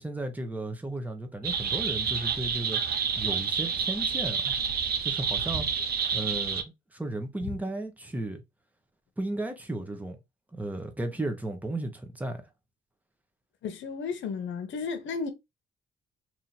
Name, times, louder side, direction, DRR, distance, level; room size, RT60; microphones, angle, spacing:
voice 1, 0.0-2.8 3.2-4.5 5.0-5.7 6.1-6.6 6.9-8.4 9.2-10.2 10.5-12.4, right 2 dB, 10° right, 1.0 m, -34 dB
sound 1, 1.4-6.6, right 6 dB, 50° right, 0.7 m, -29 dB
voice 2, 13.6-15.3, left 5 dB, 70° left, 0.9 m, -33 dB
3.0 x 2.8 x 4.0 m
cardioid pair, 90°, 20 cm